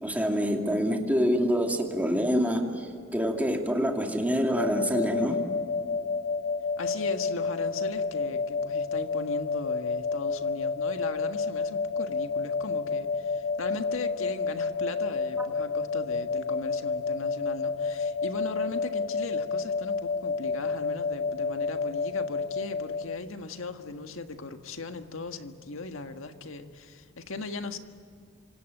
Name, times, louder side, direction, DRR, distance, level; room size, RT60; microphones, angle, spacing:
voice 1, 0.0-5.4 15.4-15.5, equal, 10° right, 2 dB, 2.5 m, -26 dB
sound 1, 4.5-23.2, left 4 dB, 45° left, 0.7 m, -30 dB
voice 2, 6.8-27.8, left 3 dB, 70° left, 6 dB, 1.7 m, -38 dB
27.5 x 26.0 x 8.0 m, 2.2 s
head